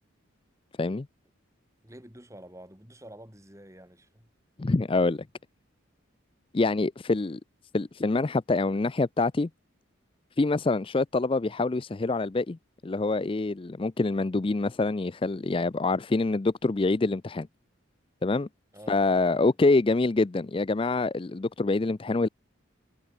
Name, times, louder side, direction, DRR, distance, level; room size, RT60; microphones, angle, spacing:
voice 1, 1.8-4.3 18.7-19.0 19.3-19.5, right 1 dB, 15° right, 5.8 m, -48 dB
voice 2, 4.6-5.2 6.5-7.4 7.7-9.5 10.4-12.6 12.8-17.5 18.2-18.5 18.9-22.3, left 3 dB, 25° left, 0.4 m, -25 dB
head